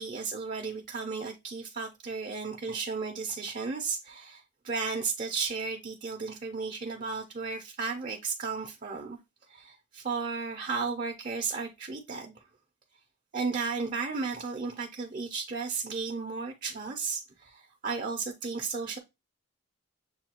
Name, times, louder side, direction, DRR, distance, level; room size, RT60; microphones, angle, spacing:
voice 1, 0.0-9.2 9.5-12.3 13.3-19.0, right 4 dB, 40° right, 0.5 m, -34 dB
7.0 x 2.3 x 2.8 m
head